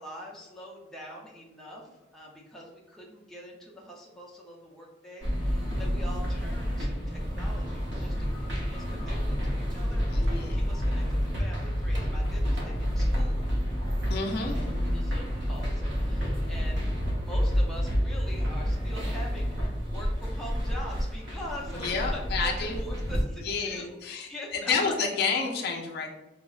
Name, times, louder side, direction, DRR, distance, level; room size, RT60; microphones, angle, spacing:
voice 1, 0.0-13.5 14.4-24.7 25.3-25.4, equal, ahead, -4 dB, 0.5 m, -44 dB
sound 1, 5.2-23.2, equal, 65° right, 0.8 m, -29 dB
voice 2, 10.1-10.6 14.1-14.6 21.7-22.8 23.4-26.1, left 4 dB, 55° left, 0 dB, 0.5 m, -30 dB
4.8 x 2.0 x 2.3 m, 0.98 s
head